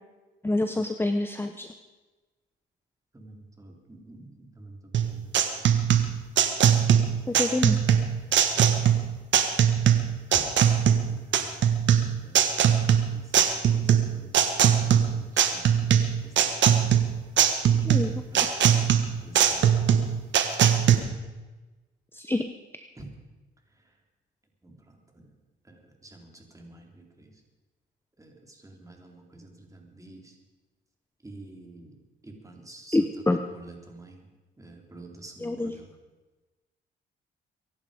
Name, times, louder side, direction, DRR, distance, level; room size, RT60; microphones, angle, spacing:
voice 1, 0.4-1.7 7.3-7.8 17.8-18.1 22.1-22.5 32.9-33.4 35.4-35.8, left 2 dB, 10° left, 7 dB, 0.9 m, -26 dB
voice 2, 3.1-4.3 4.6-5.2 10.3-10.8 11.1-11.2 12.2-12.4 13.1-14.3 14.6-15.3 15.5-15.9 16.2-16.3 16.7-16.9 17.7-17.8 18.3-18.9 19.2-19.9 23.0-23.1 24.6-24.7 25.2-25.3 25.7-25.8 26.0-27.3 28.2-28.3 28.6-30.2 31.2-31.9 32.2-33.0 33.5-34.2 34.6-35.9, right 2 dB, 15° right, 1 dB, 3.7 m, -47 dB
sound 1, 4.9-21.0, right 9 dB, 65° right, 1.6 m, -21 dB
24.0 x 11.0 x 5.2 m, 1.2 s
cardioid pair, 90°, 20 cm